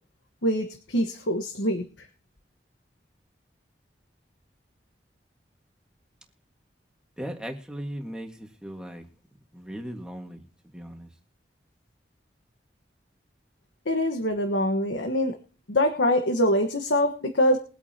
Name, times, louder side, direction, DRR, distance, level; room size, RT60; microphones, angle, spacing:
voice 1, 0.4-1.8 13.8-15.3 15.7-17.6, left 1 dB, 85° left, 5 dB, 1.5 m, -24 dB
voice 2, 7.2-9.1 9.5-10.4 10.7-11.1, equal, 5° right, 3 dB, 1.8 m, -37 dB
22.5 x 8.4 x 2.9 m, 0.38 s
head